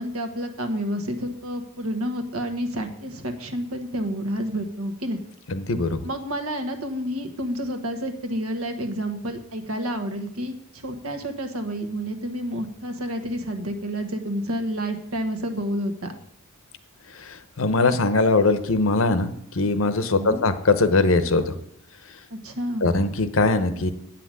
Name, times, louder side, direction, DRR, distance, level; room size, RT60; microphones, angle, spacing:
voice 1, 0.0-5.2 6.0-16.1 20.2-20.5 22.3-22.9, equal, 80° right, 5 dB, 1.3 m, -29 dB
voice 2, 5.5-6.0 17.1-21.5 22.8-23.9, left 3 dB, 65° left, 11 dB, 0.8 m, -21 dB
8.7 x 5.9 x 7.6 m, 0.73 s
head